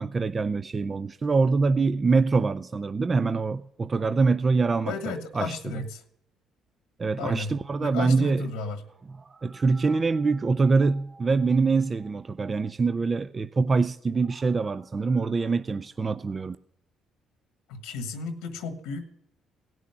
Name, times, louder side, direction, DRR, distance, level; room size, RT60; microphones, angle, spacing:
voice 1, 0.0-5.7 7.0-8.5 9.2-16.6, right 4 dB, 35° right, 0.4 m, -24 dB
voice 2, 4.8-6.0 7.2-7.5 7.8-8.8 17.7-19.0, left 4 dB, 90° left, 1.4 m, -34 dB
17.5 x 6.2 x 6.8 m
supercardioid pair, 75°, 0 cm